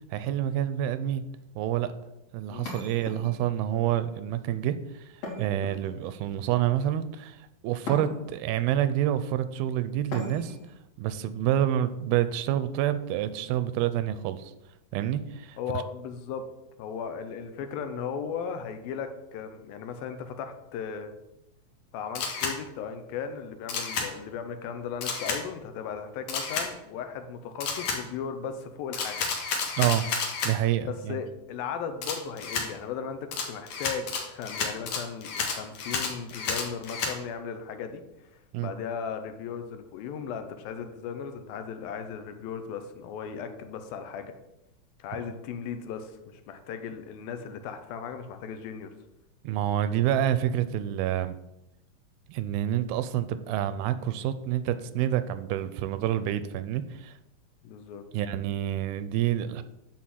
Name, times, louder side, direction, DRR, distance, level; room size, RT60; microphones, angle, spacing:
voice 1, 0.1-1.2 1.6-1.9 2.3-5.0 5.4-10.6 11.0-14.5 14.9-15.8 29.8-30.1 30.4-31.2 38.5-38.7 49.4-51.4 52.3-57.1 58.1-59.6, right 11 dB, 85° right, 12 dB, 2.5 m, -28 dB
sound 1, 2.7-3.6 5.2-6.2 7.9-8.5 10.1-10.7, left 2 dB, 45° left, 3.4 m, -38 dB
voice 2, 15.6-16.4 16.8-21.1 21.9-29.3 30.8-44.3 45.0-48.9 57.6-58.0, left 7 dB, 80° left, 8 dB, 2.6 m, -37 dB
Camera, 22.2-22.6 23.7-24.1 25.0-25.4 26.3-26.7 27.6-28.0 28.9-30.5 32.0-32.7 33.3-37.1, left 5 dB, 60° left, 2.6 m, -31 dB
10.5 x 4.3 x 7.6 m, 0.90 s
omnidirectional pair, 4.4 m